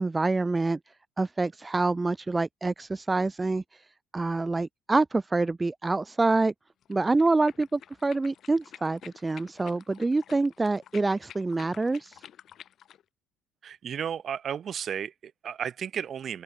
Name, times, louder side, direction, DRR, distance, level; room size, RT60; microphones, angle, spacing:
voice 1, 0.0-3.9 4.1-6.5 6.9-12.2, right 3 dB, 10° right, 0.5 m, -26 dB
sound 1, 6.8-13.0, left 10 dB, 40° left, 1.4 m, -50 dB
voice 2, 13.6-16.4, right 8 dB, 35° right, 1.7 m, -33 dB
open air
cardioid pair, 160°, 0 cm